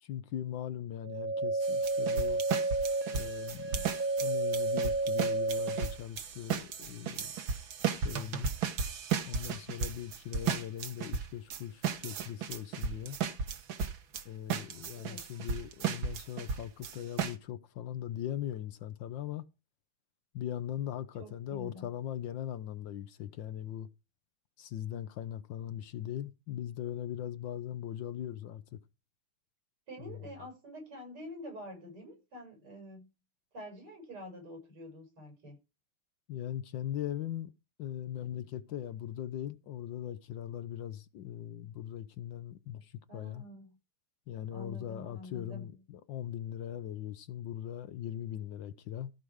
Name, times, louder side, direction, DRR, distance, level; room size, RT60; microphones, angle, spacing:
voice 1, 0.0-2.4 3.1-3.9 4.2-7.3 7.9-8.5 9.2-13.2 14.2-19.5 20.3-23.9 24.6-28.8 30.1-30.2 36.3-37.5 37.8-43.4 44.3-49.1, left 11 dB, 70° left, 1.3 m, -40 dB
sound 1, 1.0-6.0, right 2 dB, 45° right, 1.6 m, -31 dB
sound 2, 1.6-14.2 14.5-17.3, right 6 dB, 65° right, 2.0 m, -35 dB
voice 2, 15.0-15.3 21.2-21.9 29.9-33.1 33.5-35.6 43.1-43.8 44.5-45.7, equal, 85° right, 7.8 m, -47 dB
14.5 x 5.0 x 6.3 m
omnidirectional pair, 2.4 m